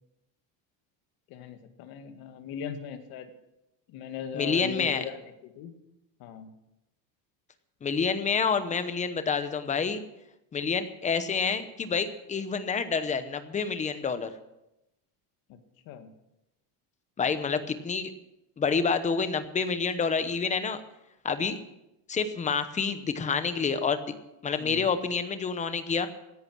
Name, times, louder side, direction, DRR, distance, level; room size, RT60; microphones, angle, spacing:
voice 1, 1.3-3.3 3.9-5.7 6.2-6.5 15.5-15.6 15.9-16.1 24.6-24.9, left 7 dB, 55° left, 7 dB, 1.9 m, -39 dB
voice 2, 4.3-5.0 7.8-10.0 10.5-14.3 17.2-18.1 18.6-20.8 21.2-21.6 22.1-24.0 24.4-26.1, left 5 dB, 15° left, 11 dB, 0.9 m, -28 dB
17.0 x 11.0 x 6.1 m, 0.90 s
cardioid pair, 165°, 44 cm